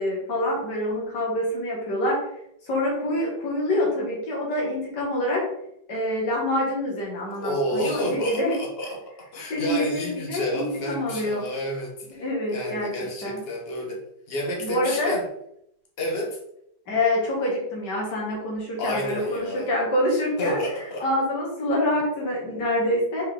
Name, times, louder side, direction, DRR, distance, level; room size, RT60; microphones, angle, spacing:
voice 1, 0.0-2.2 2.7-5.4 5.9-8.5 9.5-11.5 12.2-12.9 13.2-13.4 14.6-15.2 16.9-20.6 21.0-23.3, left 1 dB, 65° left, -4 dB, 2.5 m, -26 dB
voice 2, 7.4-14.0 14.3-15.3 16.0-16.4 18.8-19.7 20.4-21.1, equal, 35° left, 0 dB, 1.4 m, -30 dB
5.3 x 4.6 x 3.8 m, 0.75 s
omnidirectional pair, 2.0 m